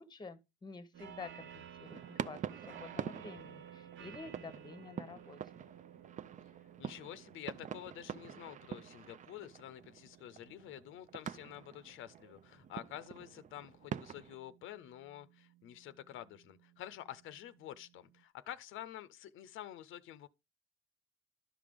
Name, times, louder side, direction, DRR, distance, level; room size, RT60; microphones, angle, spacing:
voice 1, 0.0-5.4, left 4 dB, 20° left, 0.8 m, -50 dB
sound 1, 0.9-18.2, right 9 dB, 75° right, 0.7 m, -57 dB
sound 2, 1.8-14.4, right 8 dB, 40° right, 0.4 m, -46 dB
voice 2, 6.8-20.3, left 12 dB, 85° left, 0.5 m, -49 dB
11.5 x 5.1 x 3.5 m
cardioid pair, 90°, 20 cm